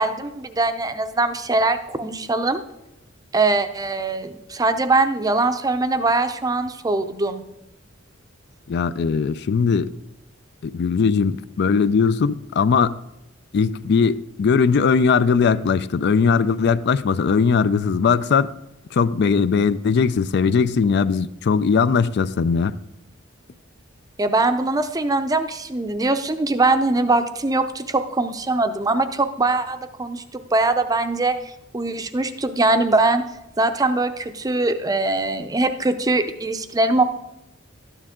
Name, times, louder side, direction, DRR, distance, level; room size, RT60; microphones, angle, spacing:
voice 1, 0.0-2.6 3.3-7.4 24.2-31.4 31.7-33.2 33.6-37.0, right 2 dB, 20° right, 0.6 m, -22 dB
voice 2, 8.7-9.9 10.6-13.0 13.5-18.5 18.9-22.7, left 5 dB, 55° left, 0.4 m, -19 dB
13.0 x 10.0 x 3.6 m
head